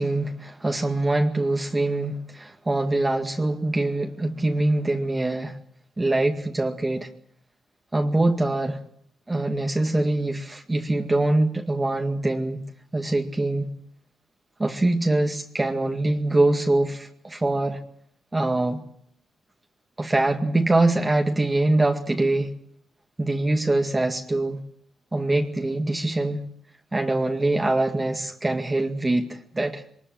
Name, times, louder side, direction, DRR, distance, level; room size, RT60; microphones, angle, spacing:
voice 1, 0.0-5.6 6.0-7.1 7.9-8.8 9.3-12.6 12.9-13.7 14.6-17.8 18.3-18.8 20.0-22.5 23.2-24.6 25.1-26.5 26.9-29.8, right 2 dB, 20° right, 3 dB, 2.1 m, -23 dB
22.0 x 20.5 x 7.7 m, 0.68 s
cardioid pair, 85°, 0 cm